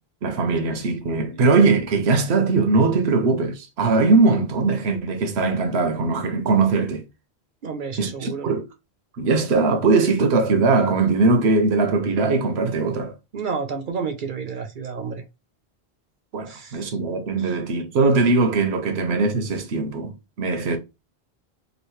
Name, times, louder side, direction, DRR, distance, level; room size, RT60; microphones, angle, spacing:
voice 1, 0.2-7.0 8.0-8.7 9.2-13.1 16.3-20.8, right 3 dB, 80° right, 1.0 m, -20 dB
voice 2, 7.6-8.5 13.3-15.2 16.5-16.8 17.4-17.5, right 5 dB, 60° right, 0.7 m, -30 dB
3.0 x 2.4 x 3.1 m
omnidirectional pair, 1.1 m